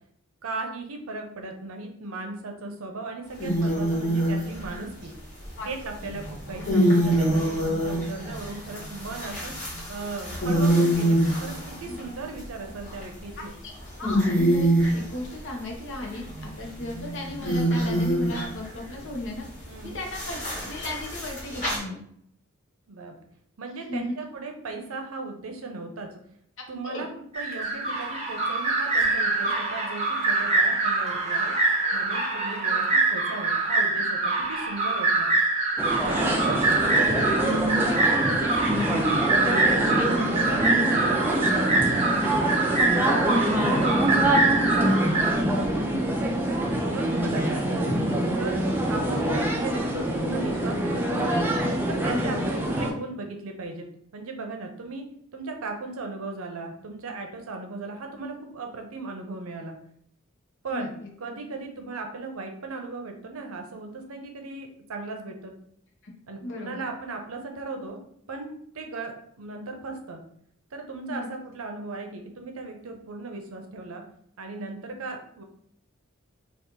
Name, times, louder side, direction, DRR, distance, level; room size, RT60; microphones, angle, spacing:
voice 1, 0.4-5.1 5.6-9.5 9.9-13.5 19.7-20.0 22.9-23.3 23.6-26.2 26.7-27.1 27.3-31.5 31.9-35.3 36.1-37.9 38.3-38.9 39.4-45.6 46.8-47.9 48.4-48.6 48.9-51.4 51.9-53.9 54.1-59.8 60.6-60.9 61.2-65.5 66.3-68.0 68.3-70.2 70.7-74.0 74.4-75.4, right 3 dB, 75° right, 4 dB, 0.6 m, -37 dB
sound 1, 3.4-4.8 6.1-12.0 12.6-13.3 13.7-13.8 14.0-15.0 16.3-18.6 20.1-21.8, right 1 dB, 35° left, 1.3 m, -25 dB
voice 2, 13.6-22.0 23.9-24.1 26.8-27.0 36.6-36.7 52.1-52.5 60.7-61.1 66.4-66.9 71.1-71.3, left 1 dB, 60° left, 0 dB, 0.8 m, -36 dB
sound 2, 27.3-45.3, right 3 dB, 30° right, 0.9 m, -25 dB
sound 3, 35.8-52.9, right 1 dB, 10° right, 0.4 m, -25 dB
2.9 x 2.4 x 3.7 m, 0.68 s
head